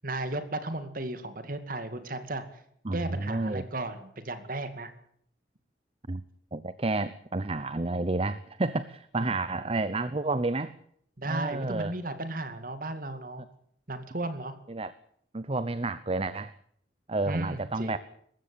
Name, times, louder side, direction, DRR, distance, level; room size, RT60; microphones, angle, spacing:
voice 1, 0.0-2.4 2.9-4.9 9.2-9.3 11.2-13.4 13.9-14.5 17.3-18.0, right 2 dB, 50° right, 9 dB, 2.3 m, -35 dB
voice 2, 2.8-3.6 6.1-6.2 6.5-10.7 11.3-11.9 14.7-14.9 15.3-16.5 17.1-18.0, right 2 dB, 35° right, 14 dB, 0.8 m, -30 dB
20.5 x 15.5 x 8.5 m, 0.67 s
head